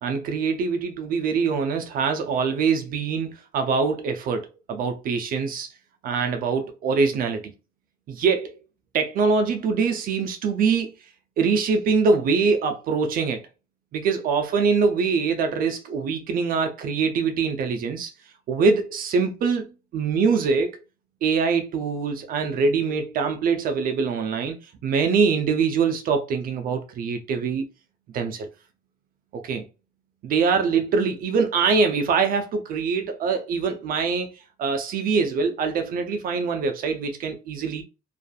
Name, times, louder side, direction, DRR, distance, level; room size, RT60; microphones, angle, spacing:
voice 1, 0.0-5.7 6.0-7.5 8.1-8.5 8.9-10.9 11.4-13.4 13.9-18.1 18.5-19.7 19.9-20.7 21.2-27.6 28.1-28.5 29.3-29.6 30.2-34.3 34.6-37.8, right 5 dB, 55° right, 0.4 m, -23 dB
2.4 x 2.4 x 2.3 m
cardioid pair, 110°, 17 cm